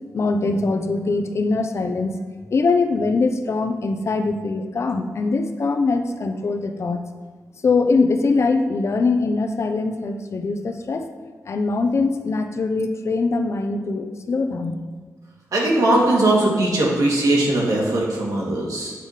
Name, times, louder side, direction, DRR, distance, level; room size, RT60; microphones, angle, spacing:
voice 1, 0.1-2.2 2.5-7.0 7.6-11.1 11.4-14.8, left 3 dB, 50° left, 6 dB, 0.7 m, -22 dB
voice 2, 15.5-18.9, right 1 dB, 75° right, -4 dB, 2.3 m, -19 dB
8.4 x 4.9 x 5.7 m, 1.4 s
wide cardioid pair, 135°, 6 cm